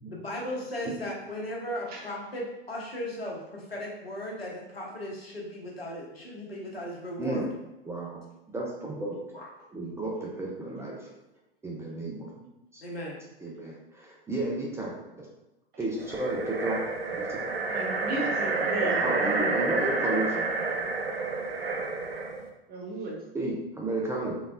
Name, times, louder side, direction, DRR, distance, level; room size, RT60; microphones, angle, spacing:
voice 1, 0.1-7.5 9.3-9.5 12.8-13.2, left 1 dB, 90° left, -2 dB, 1.0 m, -36 dB
voice 2, 7.9-8.2 8.5-9.2 9.7-11.0 11.6-12.3 12.7-12.8 13.4-15.3 15.8-16.8 17.1-17.7 18.6-20.5 23.3-24.4, right 2 dB, 10° right, -3 dB, 0.5 m, -33 dB
sound 1, 16.0-22.4, right 3 dB, 85° right, 0.6 m, -29 dB
voice 3, 17.7-19.0 22.7-23.2, right 2 dB, 30° right, -1 dB, 1.0 m, -35 dB
3.9 x 3.3 x 2.4 m, 0.96 s
figure-of-eight pair, 90°, 29 cm